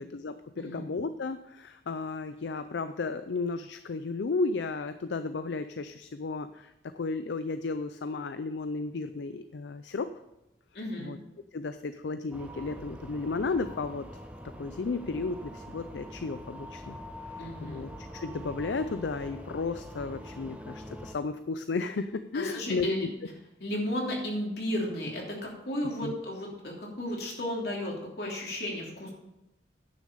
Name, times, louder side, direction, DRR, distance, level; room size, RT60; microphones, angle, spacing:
voice 1, 0.0-10.1 11.0-11.2 11.5-14.1 14.6-17.0 17.3-23.1 26.0-26.1, left 3 dB, 80° left, 11 dB, 0.5 m, -34 dB
voice 2, 10.7-11.1 17.4-17.8 22.3-23.1 23.6-29.1, left 1 dB, 65° left, -2 dB, 3.0 m, -34 dB
sound 1, 12.3-21.1, equal, 10° right, 0.7 m, -44 dB
10.5 x 6.3 x 6.8 m, 0.91 s
head